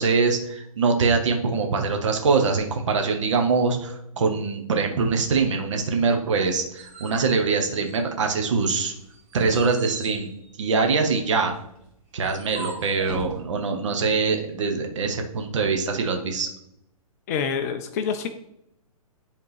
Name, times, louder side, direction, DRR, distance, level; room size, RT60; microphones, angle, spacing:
voice 1, 0.0-8.9 9.3-10.3 10.6-11.5 12.1-16.5, right 4 dB, 55° right, 3 dB, 1.2 m, -23 dB
sound 1, 6.3-8.3 8.7-13.4, right 3 dB, 25° right, 1.9 m, -41 dB
voice 2, 17.3-18.3, left 6 dB, 25° left, 8 dB, 0.4 m, -26 dB
10.5 x 3.6 x 3.2 m, 0.78 s
figure-of-eight pair, 120°, 19 cm